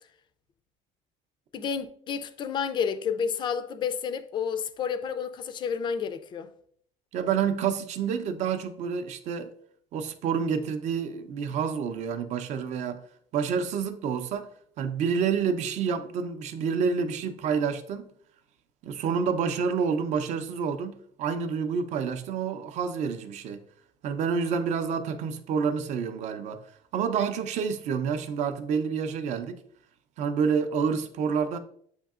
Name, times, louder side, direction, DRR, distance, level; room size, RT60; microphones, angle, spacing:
voice 1, 1.5-6.5, left 7 dB, 30° left, 0.3 m, -30 dB
voice 2, 7.1-9.5 9.9-13.0 13.3-14.5 14.8-18.1 18.8-23.6 24.0-26.6 26.9-29.6 30.2-31.6, right 6 dB, 50° right, 0.5 m, -28 dB
7.9 x 2.7 x 2.4 m
cardioid pair, 145°, 15 cm